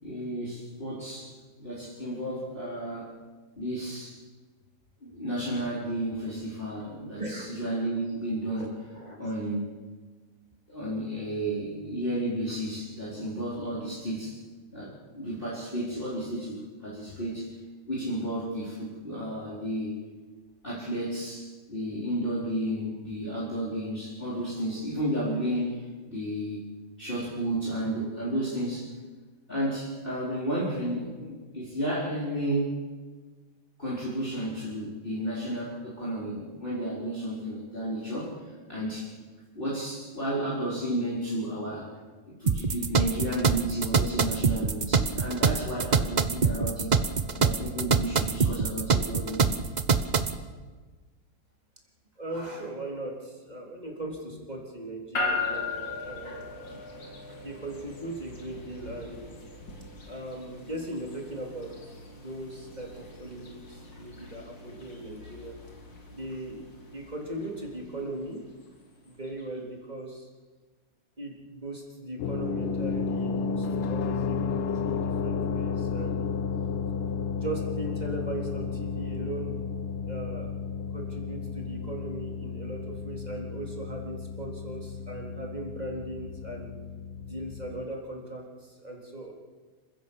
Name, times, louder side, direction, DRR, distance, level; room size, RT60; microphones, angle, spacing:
voice 1, 0.0-1.3 1.6-3.1 3.6-4.2 5.0-8.8 9.2-9.6 10.7-14.4 14.7-17.5 17.9-20.0 20.6-26.6 27.0-28.9 29.5-32.8 33.8-38.3 38.7-39.1 39.5-41.9 42.3-46.9 47.3-49.6, right 1 dB, 25° left, -8 dB, 4.7 m, -32 dB
voice 2, 7.2-7.5 8.9-9.2 52.2-57.1 57.4-59.3 60.1-61.7 62.1-65.5 66.1-66.6 66.9-68.4 69.0-70.3 71.2-76.3 77.2-79.5 80.1-80.5 80.9-86.8 87.2-89.3, right 1 dB, 20° right, 0 dB, 3.7 m, -38 dB
sound 1, 42.5-50.4, right 5 dB, 75° right, 0.4 m, -25 dB
sound 2, 55.2-69.4, left 3 dB, 60° left, 3.7 m, -39 dB
sound 3, 72.2-87.9, left 5 dB, 85° left, 1.9 m, -32 dB
27.0 x 16.0 x 7.2 m, 1.4 s
omnidirectional pair, 2.3 m